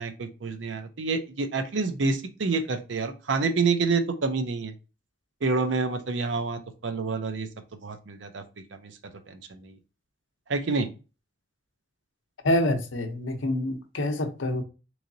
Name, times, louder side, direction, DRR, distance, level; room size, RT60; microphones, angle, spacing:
voice 1, 0.0-4.7 5.4-7.5 7.8-8.4 8.7-8.9 9.3-9.7 10.5-10.9, right 4 dB, 75° right, 0.6 m, -28 dB
voice 2, 12.4-14.6, left 1 dB, 80° left, 0.7 m, -26 dB
3.8 x 3.1 x 2.6 m
head